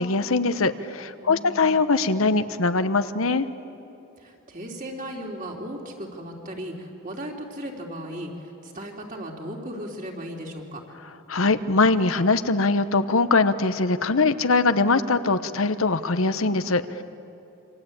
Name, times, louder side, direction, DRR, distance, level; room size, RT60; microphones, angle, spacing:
voice 1, 0.0-3.5 11.3-17.0, left 3 dB, 80° left, 11 dB, 1.0 m, -22 dB
voice 2, 1.2-1.8 4.2-10.8, equal, 40° right, 0 dB, 3.4 m, -36 dB
26.5 x 25.5 x 8.7 m, 2.9 s
head